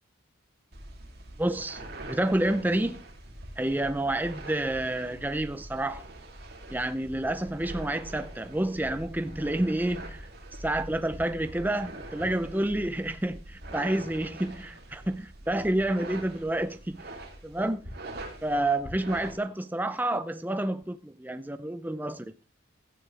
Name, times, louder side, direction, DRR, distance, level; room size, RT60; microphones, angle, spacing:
sound 1, 0.7-19.3, right 1 dB, 50° right, 3.0 m, -44 dB
voice 1, 1.4-3.0 3.6-6.0 6.7-10.3 10.6-17.0 17.4-17.9 18.4-22.2, right 1 dB, 10° right, 0.5 m, -29 dB
17.0 x 11.5 x 3.4 m
head